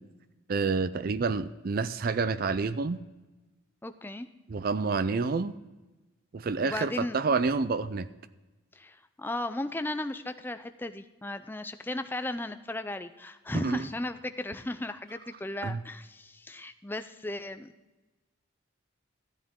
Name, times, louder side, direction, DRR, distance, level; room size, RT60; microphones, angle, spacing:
voice 1, 0.5-3.0 4.5-5.5 6.3-8.1 13.5-13.9 15.6-15.8, right 4 dB, 45° right, 14 dB, 0.4 m, -28 dB
voice 2, 3.8-4.3 6.6-7.2 8.8-17.7, left 1 dB, 10° left, 9 dB, 0.4 m, -36 dB
13.5 x 9.6 x 3.6 m, 1.1 s
head